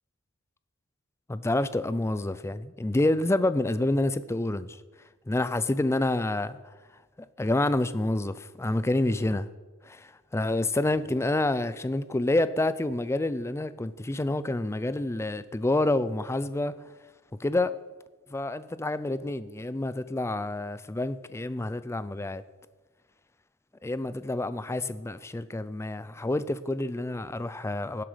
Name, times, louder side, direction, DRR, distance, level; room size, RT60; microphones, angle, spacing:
voice 1, 1.3-4.7 5.3-6.6 7.4-9.5 9.8-16.7 17.4-17.7 18.3-22.4 23.8-28.0, left 2 dB, 10° left, 0.4 m, -28 dB
17.5 x 7.6 x 5.0 m
head